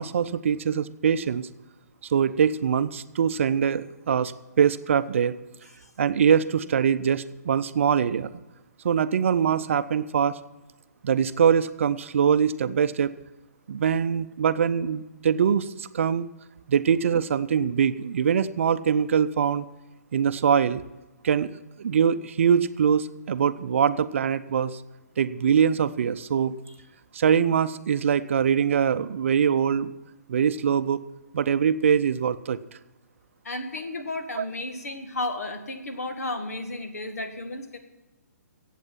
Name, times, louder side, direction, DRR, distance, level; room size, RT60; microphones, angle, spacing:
voice 1, 0.0-1.5 2.1-5.3 6.0-8.4 8.8-10.4 11.0-13.1 13.7-16.3 16.7-19.7 20.1-20.8 21.2-21.5 21.8-24.8 25.2-26.5 27.1-29.9 30.3-31.0 31.3-32.6 34.4-34.5, right 7 dB, 50° right, 13 dB, 0.6 m, -23 dB
voice 2, 33.4-37.8, left 2 dB, 70° left, 7 dB, 1.9 m, -33 dB
15.5 x 8.3 x 5.8 m, 1.0 s
figure-of-eight pair, 130°, 9 cm